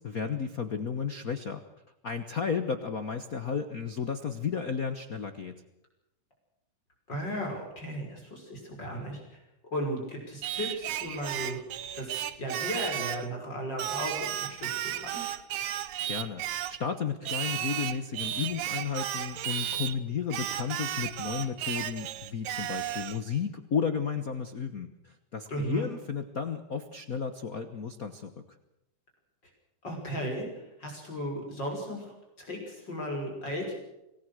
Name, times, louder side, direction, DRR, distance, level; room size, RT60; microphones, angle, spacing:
voice 1, 0.0-1.6 2.0-5.6 16.1-28.3, left 6 dB, 65° left, 8 dB, 0.8 m, -33 dB
voice 2, 7.1-9.4 9.7-11.6 11.9-15.2 25.5-25.9 29.8-33.8, equal, 35° left, 0 dB, 6.4 m, -35 dB
Singing, 10.4-13.3 13.8-16.8 17.3-20.0 20.3-23.2, right 12 dB, 75° right, 2.4 m, -34 dB
26.0 x 18.5 x 6.4 m, 0.91 s
omnidirectional pair, 3.5 m